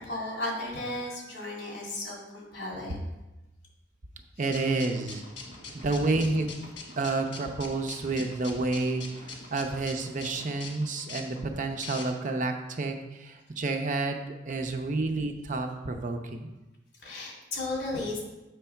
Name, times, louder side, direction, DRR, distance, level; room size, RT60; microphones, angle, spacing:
voice 1, 0.0-3.0 17.0-18.2, left 2 dB, 70° left, -3 dB, 2.4 m, -35 dB
voice 2, 4.4-5.2 5.7-6.7 7.0-16.5, right 3 dB, 45° right, 5 dB, 0.6 m, -30 dB
sound 1, 4.5-12.4, left 3 dB, 85° left, 1.4 m, -44 dB
7.7 x 3.4 x 5.7 m, 1.0 s
head